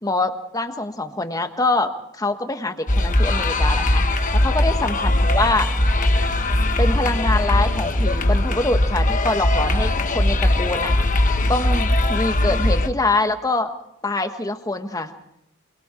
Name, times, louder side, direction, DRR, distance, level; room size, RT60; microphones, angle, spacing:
voice 1, 0.0-4.0 4.3-5.7 6.8-10.9 11.5-13.7 14.0-15.1, left 2 dB, 15° left, 7 dB, 1.4 m, -24 dB
sound 1, 2.9-12.9, left 1 dB, 40° left, 1.3 m, -20 dB
26.5 x 22.5 x 4.5 m, 0.77 s
head